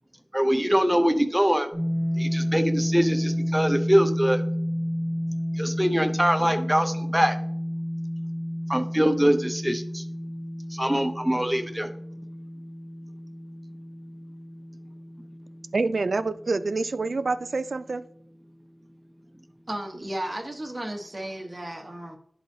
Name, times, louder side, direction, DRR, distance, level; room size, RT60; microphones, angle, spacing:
voice 1, 0.3-1.7 2.2-4.4 5.6-7.4 8.7-10.0 10.7-11.9, equal, 10° right, 7 dB, 0.6 m, -23 dB
sound 1, 1.7-17.7, equal, 30° left, 2.2 m, -31 dB
voice 2, 15.7-18.0, right 3 dB, 85° right, 13 dB, 0.3 m, -27 dB
voice 3, 19.7-22.2, right 1 dB, 30° right, 1 dB, 1.2 m, -34 dB
11.5 x 4.0 x 2.7 m, 0.66 s
wide cardioid pair, 75°, 0 cm